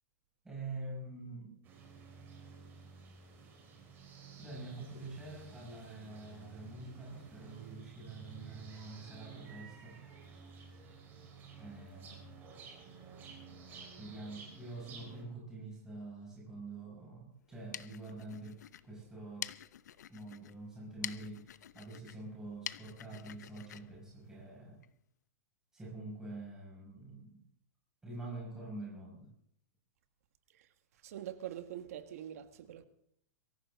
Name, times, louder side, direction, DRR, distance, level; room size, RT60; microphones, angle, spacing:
voice 1, 0.4-1.6 4.4-10.0 11.6-12.3 14.0-19.5 20.1-24.8 25.7-27.4 28.0-29.3, right 2 dB, 5° right, 6.2 m, -46 dB
sound 1, 1.6-15.2, right 5 dB, 20° right, 4.6 m, -53 dB
sound 2, 17.4-24.9, left 10 dB, 85° left, 0.8 m, -48 dB
voice 2, 31.0-32.9, right 11 dB, 60° right, 1.8 m, -44 dB
23.5 x 14.5 x 3.8 m
supercardioid pair, 165°, 9 cm